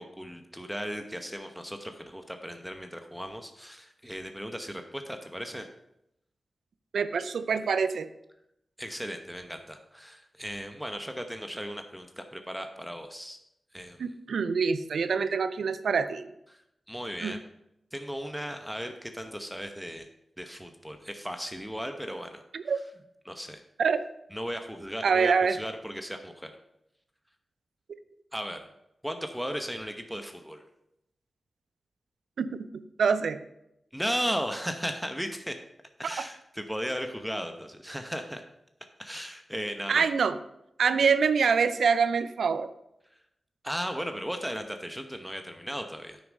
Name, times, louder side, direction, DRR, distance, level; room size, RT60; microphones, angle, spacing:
voice 1, 0.0-5.7 8.8-13.4 13.7-14.0 16.5-16.6 16.9-17.4 17.9-20.1 20.4-22.4 23.2-23.6 24.3-26.6 28.3-28.7 29.0-30.6 33.9-35.6 36.0-38.4 39.0-40.1 43.6-46.2, equal, 5° right, 6 dB, 0.9 m, -36 dB
voice 2, 6.9-8.1 14.0-16.3 17.2-17.4 22.5-22.8 23.8-24.0 25.0-25.6 32.4-33.4 39.9-40.4 40.8-42.7, right 5 dB, 85° right, 12 dB, 0.5 m, -25 dB
9.1 x 6.2 x 5.3 m, 0.83 s
cardioid pair, 60°, 0 cm